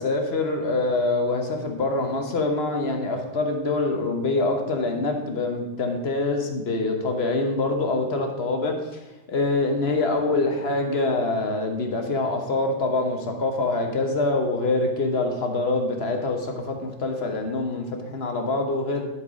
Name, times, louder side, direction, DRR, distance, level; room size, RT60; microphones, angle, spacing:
voice 1, 0.0-19.0, left 2 dB, 60° left, 3 dB, 1.2 m, -25 dB
11.0 x 4.7 x 4.8 m, 1.1 s
omnidirectional pair, 1.2 m